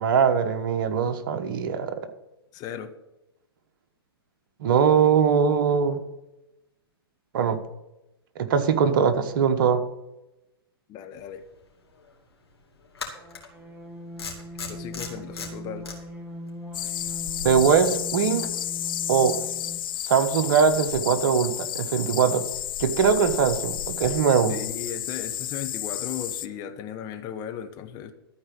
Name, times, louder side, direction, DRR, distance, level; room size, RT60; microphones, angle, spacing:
voice 1, 0.0-1.9 4.6-6.0 7.3-7.6 8.4-9.8 17.4-18.5 19.1-19.4 20.0-22.4 22.8-24.5, right 6 dB, 55° right, 9 dB, 1.2 m, -21 dB
voice 2, 2.5-2.9 10.9-11.4 14.7-15.9 24.5-28.1, left 8 dB, 30° left, 7 dB, 1.2 m, -36 dB
sound 1, 11.6-11.7 13.0-13.5 14.2-15.9, left 5 dB, 75° left, 2.9 m, -36 dB
Sacrificial Summons, 13.1-20.0, equal, 10° right, 1.4 m, -40 dB
sound 2, 16.7-26.5, left 11 dB, 55° left, 0.6 m, -32 dB
13.5 x 4.7 x 8.6 m, 0.95 s
figure-of-eight pair, 115°, 13 cm